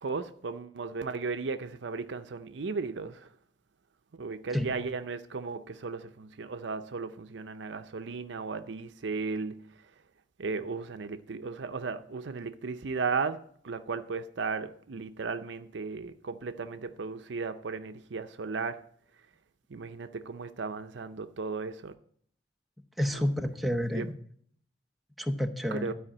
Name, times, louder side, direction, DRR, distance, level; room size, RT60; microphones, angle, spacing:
voice 1, 0.0-3.3 4.1-9.6 10.4-18.8 19.7-21.9 23.1-23.3 23.9-24.1 25.7-25.9, right 4 dB, 70° right, 0.6 m, -35 dB
voice 2, 23.0-24.1 25.2-25.9, equal, ahead, 0.7 m, -29 dB
12.5 x 4.9 x 8.7 m
head